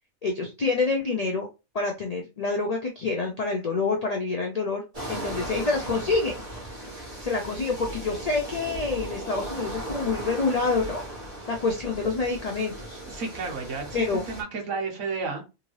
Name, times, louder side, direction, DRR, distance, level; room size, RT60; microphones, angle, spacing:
voice 1, 0.2-1.5 1.7-4.8 5.1-6.4 7.2-11.0 11.5-13.0 13.9-14.2, left 3 dB, 65° left, 2 dB, 0.4 m, -27 dB
sound 1, 4.9-14.4, right 1 dB, 30° right, 1.3 m, -37 dB
voice 2, 13.1-15.5, right 4 dB, 75° right, 1 dB, 1.5 m, -32 dB
3.6 x 2.6 x 3.1 m, 0.28 s
omnidirectional pair, 1.4 m